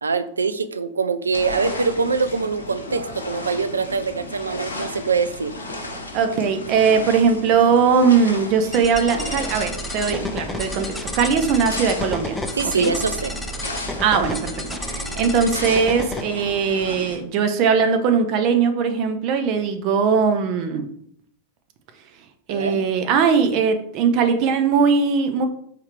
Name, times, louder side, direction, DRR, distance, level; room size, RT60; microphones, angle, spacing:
voice 1, 0.0-5.5 12.6-13.3 22.5-22.8, right 4 dB, 75° right, 12 dB, 0.3 m, -23 dB
sound 1, 1.3-17.2, left 1 dB, 75° left, 0.8 m, -34 dB
voice 2, 6.1-12.4 12.8-12.9 14.0-20.9 22.5-25.4, right 6 dB, 40° right, 7 dB, 0.6 m, -20 dB
sound 2, 8.7-16.2, left 1 dB, 5° left, 0.4 m, -31 dB
4.7 x 3.3 x 3.3 m, 0.66 s
figure-of-eight pair, 90°, 0 cm